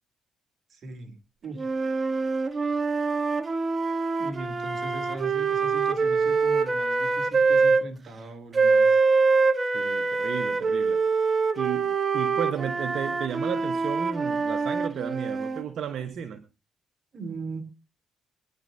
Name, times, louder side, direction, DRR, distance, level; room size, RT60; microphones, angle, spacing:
voice 1, 0.7-1.2 1.4-1.6 4.2-9.0 17.1-17.6, right 2 dB, 50° right, 2.9 m, -39 dB
sound 1, 1.6-7.8 8.5-15.6, right 4 dB, 35° right, 1.2 m, -24 dB
voice 2, 9.7-16.4, right 8 dB, 65° right, 1.1 m, -34 dB
24.0 x 10.5 x 2.7 m
cardioid pair, 90°, 0 cm